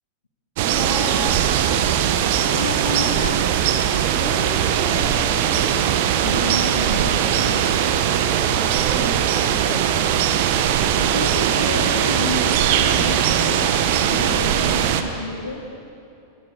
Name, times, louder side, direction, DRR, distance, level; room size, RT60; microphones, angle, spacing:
voice 1, 0.6-1.4 4.1-5.8 8.6-10.1, left 2 dB, 10° left, -3 dB, 3.2 m, -34 dB
sound 1, 0.6-15.0, right 9 dB, 50° right, 1.6 m, -20 dB
voice 2, 2.5-3.5 6.2-7.7 10.7-15.6, left 3 dB, 75° left, 2 dB, 2.2 m, -30 dB
28.5 x 23.5 x 6.7 m, 2.6 s
figure-of-eight pair, 90°, 0 cm